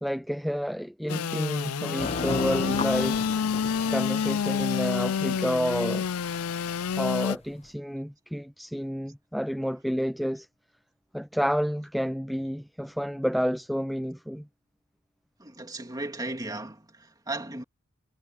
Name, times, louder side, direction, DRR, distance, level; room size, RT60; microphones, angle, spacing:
voice 1, 0.0-3.3 3.9-6.1 7.0-10.5 11.1-14.5, equal, ahead, 0.4 m, -30 dB
Engine / Sawing, 1.1-7.4, left 7 dB, 85° left, 0.5 m, -28 dB
sound 1, 2.0-7.6, left 2 dB, 30° left, 1.1 m, -37 dB
voice 2, 15.4-17.6, right 2 dB, 20° right, 2.6 m, -36 dB
head